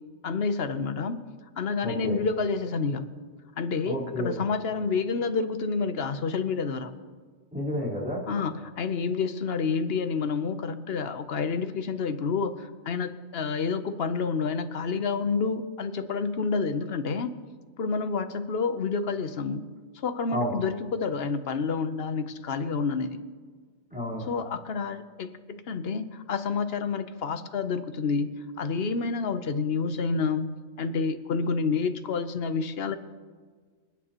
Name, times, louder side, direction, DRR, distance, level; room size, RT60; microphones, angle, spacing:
voice 1, 0.2-1.2 1.6-3.1 3.6-6.9 8.3-17.3 17.8-19.6 19.9-23.2 24.3-30.5 30.8-33.0, left 5 dB, 55° left, 10 dB, 1.0 m, -29 dB
voice 2, 1.8-2.2 3.9-4.4 7.5-8.2 20.3-20.6 23.9-24.3, equal, 5° right, -6 dB, 4.0 m, -30 dB
28.0 x 9.3 x 3.0 m, 1.5 s
omnidirectional pair, 1.4 m